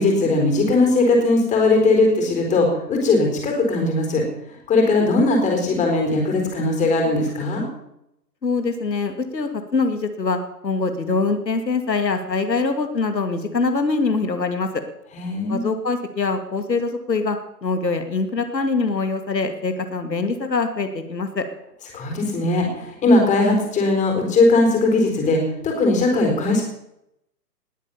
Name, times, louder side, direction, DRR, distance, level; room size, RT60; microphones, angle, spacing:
voice 1, 0.0-4.2 4.7-7.6 15.1-15.6 21.9-26.6, left 2 dB, 15° left, 2 dB, 4.1 m, -19 dB
voice 2, 8.4-14.8 15.5-21.5, left 4 dB, 85° left, 7 dB, 2.4 m, -23 dB
19.5 x 8.6 x 7.0 m, 0.81 s
hypercardioid pair, 140°, 50 cm